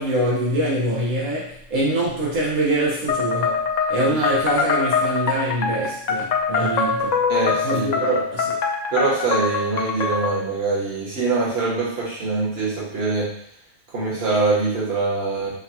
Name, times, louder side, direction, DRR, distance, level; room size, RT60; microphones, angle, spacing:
voice 1, 0.0-7.1 7.6-8.5, right 1 dB, 85° right, -6 dB, 1.5 m, -24 dB
sound 1, 3.1-10.5, left 5 dB, 70° left, 0.4 m, -23 dB
voice 2, 7.3-8.2 8.9-13.3 13.9-15.5, right 3 dB, 50° right, -6 dB, 1.6 m, -23 dB
5.8 x 2.4 x 2.8 m, 0.71 s
omnidirectional pair, 1.3 m